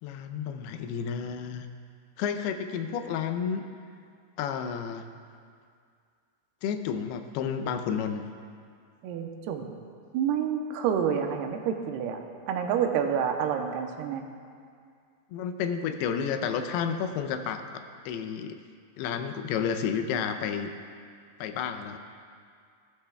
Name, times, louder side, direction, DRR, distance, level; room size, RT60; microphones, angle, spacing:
voice 1, 0.0-1.7 2.2-3.6 4.4-5.1 6.6-8.2 15.3-18.6 19.0-20.7 21.4-22.0, left 7 dB, 85° left, 7 dB, 2.7 m, -31 dB
voice 2, 9.0-9.7 10.1-12.2 12.5-14.2, right 8 dB, 85° right, 4 dB, 2.7 m, -28 dB
17.5 x 12.5 x 2.3 m, 2.2 s
omnidirectional pair, 4.5 m